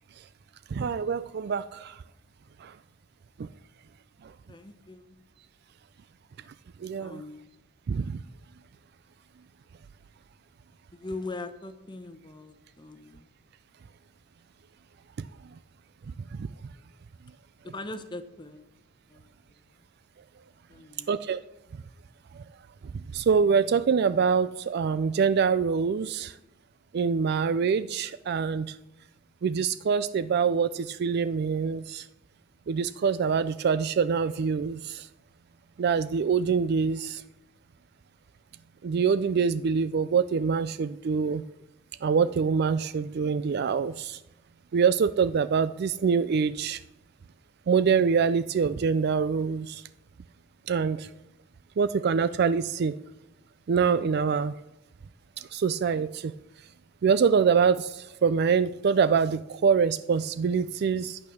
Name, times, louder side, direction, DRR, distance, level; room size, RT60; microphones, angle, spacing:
voice 1, 0.7-2.0 2.6-2.7 3.4-3.5 4.2-4.3 6.8-7.2 7.9-8.2 15.2-15.3 16.3-16.4 21.1-21.4 22.3-22.4 23.1-26.4 26.9-28.8 29.4-32.1 32.7-35.1 35.8-37.2 38.8-41.4 42.0-44.2 44.7-46.8 47.7-49.8 50.7-51.1 51.8-53.0 53.7-54.5 55.4-56.3 57.0-61.2, right 6 dB, 55° right, 14 dB, 0.4 m, -25 dB
voice 2, 4.5-5.2 7.0-7.4 10.9-13.3 17.7-18.7 19.1-19.3 20.7-21.1, left 2 dB, 25° left, 10 dB, 0.9 m, -40 dB
11.5 x 8.6 x 6.3 m, 0.90 s
head